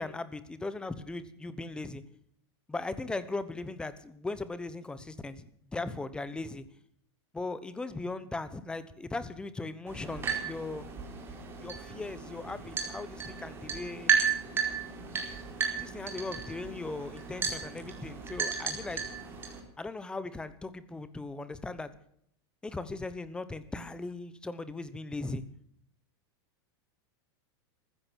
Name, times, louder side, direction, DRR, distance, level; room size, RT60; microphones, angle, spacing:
voice 1, 0.0-2.0 2.7-6.7 7.3-10.9 11.6-14.1 15.8-19.0 19.8-21.9 22.6-25.4, left 3 dB, 5° left, 14 dB, 1.1 m, -38 dB
sound 1, 9.9-19.6, right 6 dB, 15° right, 4.4 m, -34 dB
15.0 x 14.5 x 6.3 m, 0.68 s
supercardioid pair, 155°, 14 cm